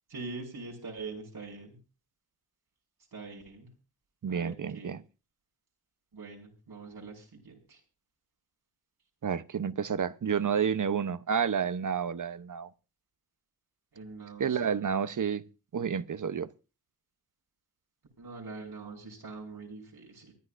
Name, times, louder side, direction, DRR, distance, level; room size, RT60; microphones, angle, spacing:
voice 1, 0.1-1.8 3.1-3.7 4.3-4.9 6.1-7.8 13.9-14.8 18.2-20.3, right 3 dB, 90° right, 5.2 m, -43 dB
voice 2, 4.2-5.0 9.2-12.7 14.4-15.4 15.7-16.5, right 7 dB, 55° right, 0.8 m, -30 dB
24.0 x 10.5 x 2.6 m
wide cardioid pair, 70°, 37 cm